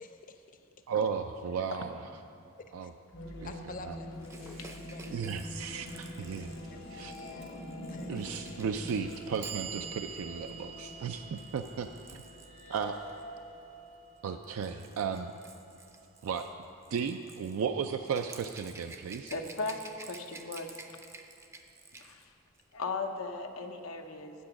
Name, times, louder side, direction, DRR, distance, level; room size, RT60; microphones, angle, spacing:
voice 1, 0.0-0.7 2.8-2.9 3.4-4.1 4.3-5.3 6.2-6.4 6.7-8.2, left 3 dB, 40° left, 6 dB, 0.6 m, -49 dB
voice 2, 0.9-1.9 2.7-2.9 3.8-3.9 4.6-4.7 5.1-6.5 6.9-7.1 8.1-12.2 12.7-13.0 14.2-15.3 16.2-16.5 16.9-19.3, right 6 dB, 85° right, 7 dB, 0.3 m, -35 dB
sound 1, 3.1-14.9, left 1 dB, 70° left, 1.2 m, -45 dB
Rattle / Rattle (instrument), 4.2-13.2 14.2-22.3 22.6-22.7, right 3 dB, 15° right, 0.4 m, -52 dB
Clock, 7.4-7.5 8.5-8.6 9.1-15.2, right 8 dB, 60° right, 0.8 m, -47 dB
voice 3, 19.3-20.7 22.0-22.3 22.7-24.3, left 3 dB, 90° left, 5 dB, 0.7 m, -37 dB
8.6 x 7.6 x 5.8 m, 2.7 s
head